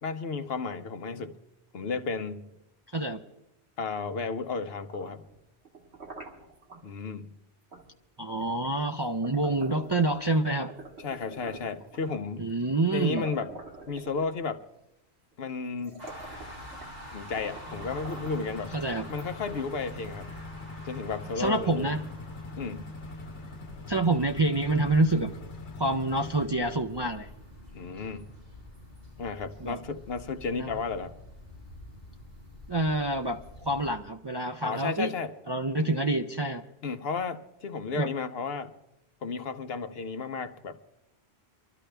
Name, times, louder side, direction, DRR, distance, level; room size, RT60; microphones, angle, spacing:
voice 1, 0.0-1.3 1.7-2.5 3.8-5.2 6.8-7.3 11.0-12.5 12.9-13.5 13.9-14.6 15.4-16.0 17.1-18.7 19.1-20.3 20.8-21.9 22.6-22.9 27.7-28.3 29.2-31.2 34.6-35.3 36.8-38.7 39.2-40.8, left 4 dB, 65° left, 9 dB, 1.0 m, -33 dB
sound 1, 4.7-6.8 7.7-7.9 8.3-10.3 10.7-12.3 12.9-13.0 13.2-14.6 15.3-15.4 15.8-17.0 17.3-18.5 19.1-19.9, right 2 dB, 80° right, 2.2 m, -46 dB
voice 2, 8.2-10.7 12.4-13.3 18.7-19.1 21.4-22.0 23.9-25.3 25.8-27.3 29.6-29.8 30.5-30.7 32.7-35.1 35.5-36.6 38.0-38.1, right 2 dB, 35° right, 3 dB, 0.4 m, -27 dB
sound 2, 16.0-33.9, left 1 dB, 60° right, 7.4 m, -47 dB
sound 3, 17.7-26.5, left 3 dB, 85° left, 1.3 m, -43 dB
24.5 x 13.0 x 3.4 m, 0.90 s
omnidirectional pair, 1.1 m